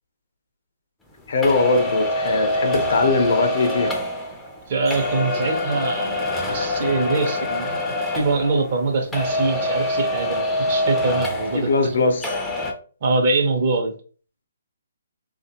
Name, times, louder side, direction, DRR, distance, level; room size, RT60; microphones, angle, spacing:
voice 1, 1.3-4.0 11.5-12.3, left 3 dB, 60° left, 0.7 m, -20 dB
sound 1, 1.4-8.9 9.1-12.0 12.2-12.7, left 1 dB, 5° left, 0.5 m, -25 dB
voice 2, 4.7-7.8 8.1-11.9 13.0-13.9, right 3 dB, 45° right, 0.8 m, -23 dB
3.1 x 2.4 x 2.8 m
hypercardioid pair, 150°, 0 cm